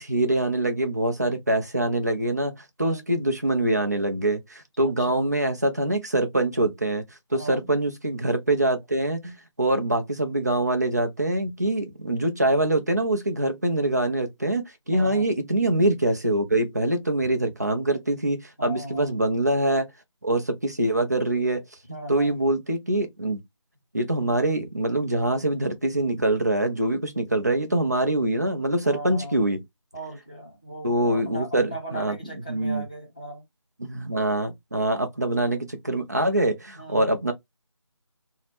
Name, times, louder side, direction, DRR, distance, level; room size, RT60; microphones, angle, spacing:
voice 1, 0.0-2.5 2.8-7.1 7.3-19.9 20.2-21.6 22.1-23.4 23.9-29.6 30.8-32.2 32.5-32.8 33.8-37.3, right 1 dB, 35° right, 0.5 m, -24 dB
voice 2, 4.8-5.3 7.3-7.7 14.9-15.3 18.6-19.2 21.9-22.4 28.8-29.4 29.9-33.4 36.8-37.1, right 1 dB, 15° left, 0.7 m, -37 dB
2.7 x 2.1 x 3.0 m
figure-of-eight pair, 175°, 16 cm